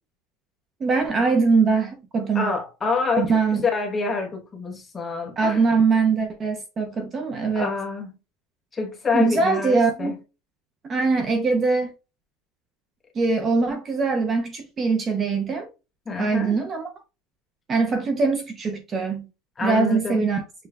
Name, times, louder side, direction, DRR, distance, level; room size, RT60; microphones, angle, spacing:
voice 1, 0.8-2.5 3.1-3.7 5.4-7.7 9.1-10.2 10.8-11.9 13.1-15.7 16.2-16.9 17.7-19.3 19.6-20.4, right 4 dB, 20° right, 0.5 m, -22 dB
voice 2, 2.3-5.7 7.5-8.1 8.7-10.1 16.1-16.5 19.6-20.2, left 4 dB, 15° left, 0.8 m, -27 dB
6.6 x 2.2 x 3.3 m
cardioid pair, 180°, 0 cm